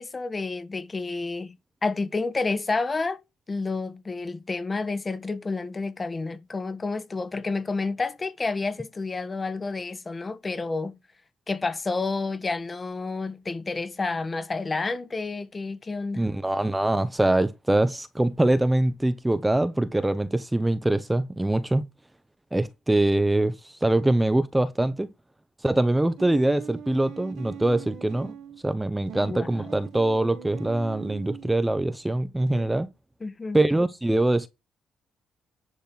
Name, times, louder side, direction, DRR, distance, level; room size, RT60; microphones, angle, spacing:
voice 1, 0.0-1.6 1.8-3.2 3.5-11.0 11.5-16.2 29.2-29.7 33.2-33.6, left 3 dB, 30° left, 1.4 m, -30 dB
voice 2, 16.1-21.9 22.5-25.1 25.6-28.3 28.6-32.9 33.5-34.5, right 1 dB, 10° right, 1.0 m, -23 dB
sound 1, 26.2-28.6 29.1-31.6 32.5-32.7, right 9 dB, 80° right, 1.6 m, -42 dB
10.5 x 4.2 x 5.8 m
cardioid pair, 90°, 0 cm